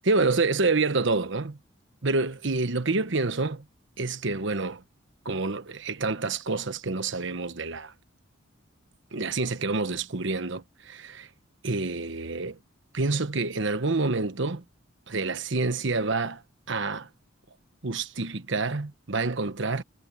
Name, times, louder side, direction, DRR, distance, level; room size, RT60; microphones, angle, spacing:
voice 1, 0.0-1.6 2.0-3.6 4.0-4.8 5.2-7.9 9.1-11.3 11.6-12.6 12.9-14.6 15.1-16.4 16.7-17.1 17.8-19.8, right 3 dB, 65° right, 1.2 m, -27 dB
head